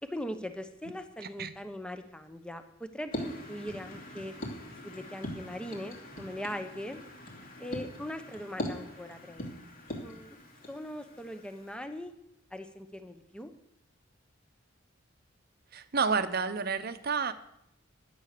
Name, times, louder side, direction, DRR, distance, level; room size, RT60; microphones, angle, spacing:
voice 1, 0.0-4.3 4.8-7.0 7.6-9.5 10.0-10.4 10.7-12.1 12.5-13.5, left 1 dB, 5° left, 8 dB, 0.9 m, -40 dB
voice 2, 1.2-1.5 15.7-17.3, right 5 dB, 50° right, 11 dB, 0.8 m, -30 dB
sound 1, 3.1-11.8, left 1 dB, 45° left, 2.9 m, -42 dB
12.5 x 8.8 x 6.8 m, 0.78 s
head